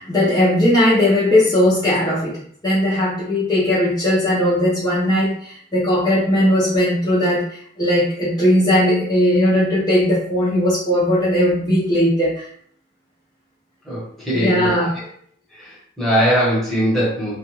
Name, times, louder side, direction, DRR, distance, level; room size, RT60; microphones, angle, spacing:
voice 1, 0.0-12.5 14.3-15.0, left 1 dB, 20° left, -11 dB, 0.7 m, -18 dB
voice 2, 13.8-15.0 15.6-17.4, equal, ahead, -8 dB, 1.0 m, -21 dB
2.4 x 2.2 x 3.0 m, 0.63 s
head